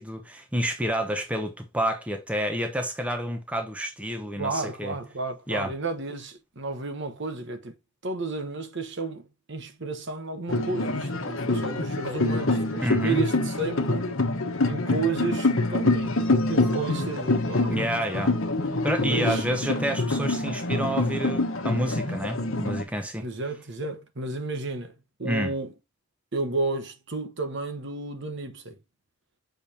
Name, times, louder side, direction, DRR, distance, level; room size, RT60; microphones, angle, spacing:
voice 1, 0.0-5.0 5.5-5.7 12.8-13.2 17.7-18.3 18.8-23.2 25.2-25.5, equal, 5° right, 0.9 m, -29 dB
voice 2, 4.4-7.7 8.0-14.1 14.6-16.2 16.5-18.0 19.0-19.4 23.2-24.9 25.2-25.7 26.3-28.8, right 3 dB, 55° right, 1.1 m, -32 dB
sound 1, 10.5-22.8, left 2 dB, 65° left, 1.1 m, -26 dB
6.9 x 5.2 x 2.8 m
head